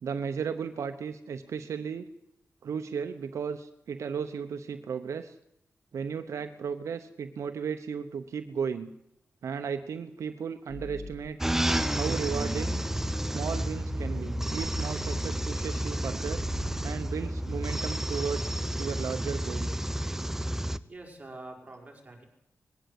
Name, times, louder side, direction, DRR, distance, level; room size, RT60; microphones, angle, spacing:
voice 1, 0.0-2.1 2.6-5.4 5.9-8.9 9.4-11.4 12.0-12.8 13.3-16.4 16.8-19.7, right 6 dB, 85° right, 9 dB, 1.0 m, -35 dB
sound 1, 10.7-11.3 11.8-16.9, equal, 20° left, 5.1 m, -42 dB
sound 2, 11.4-20.8, right 1 dB, 10° right, 0.7 m, -31 dB
voice 2, 20.9-22.3, right 2 dB, 30° right, 2 dB, 5.3 m, -45 dB
20.5 x 16.0 x 8.4 m, 0.82 s
wide cardioid pair, 105°, 5 cm